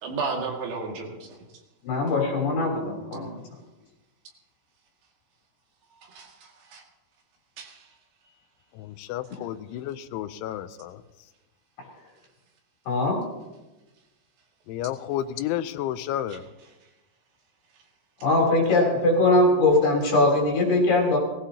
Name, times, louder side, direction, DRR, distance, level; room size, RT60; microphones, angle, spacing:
voice 1, 0.0-1.3 6.0-6.8 7.6-7.9 16.2-16.7, right 4 dB, 55° right, 0 dB, 3.6 m, -34 dB
voice 2, 1.8-3.3 12.9-13.2 18.2-21.2, left 2 dB, 55° left, -1 dB, 5.2 m, -21 dB
voice 3, 9.1-10.9 14.7-16.4, left 12 dB, 85° left, 11 dB, 3.0 m, -31 dB
23.0 x 16.0 x 2.9 m, 1.1 s
omnidirectional pair, 5.5 m